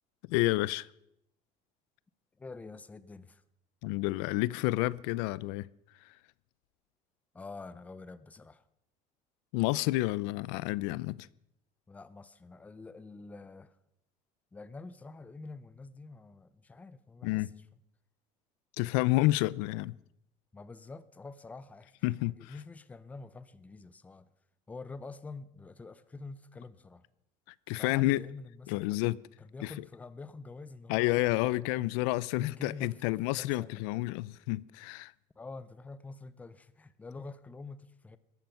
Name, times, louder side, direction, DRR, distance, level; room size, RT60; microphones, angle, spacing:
voice 1, 0.3-0.9 3.8-5.7 9.5-11.3 17.2-17.5 18.8-19.9 22.0-22.5 27.7-28.2 28.7-29.2 29.6-29.7 30.9-35.1, left 19 dB, 90° left, 0.5 m, -29 dB
voice 2, 2.4-3.4 7.3-8.7 11.9-13.8 14.5-17.6 20.5-24.3 24.7-27.0 27.8-28.9 29.4-32.0 32.3-34.1 35.4-38.2, left 3 dB, 10° left, 0.6 m, -47 dB
17.5 x 14.0 x 5.8 m
cardioid pair, 170°, 15 cm